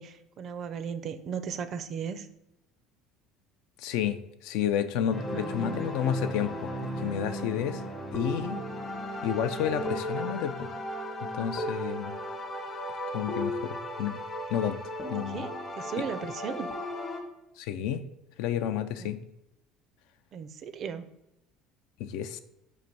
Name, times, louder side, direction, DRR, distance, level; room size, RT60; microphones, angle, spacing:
voice 1, 0.0-2.3 5.1-5.5 15.3-16.7 19.0-19.1 20.3-21.1, right 6 dB, 50° right, 11 dB, 0.4 m, -36 dB
voice 2, 3.8-4.2 4.4-6.7 7.0-7.8 8.1-8.6 9.2-10.7 11.3-12.2 13.1-14.2 14.5-14.8 15.1-15.5 17.6-18.0 18.4-19.2 22.0-22.4, left 9 dB, 75° left, 11 dB, 0.3 m, -30 dB
sound 1, 5.1-17.2, equal, 35° left, 1.0 m, -35 dB
4.0 x 2.6 x 4.5 m, 0.87 s
supercardioid pair, 90°, 0 cm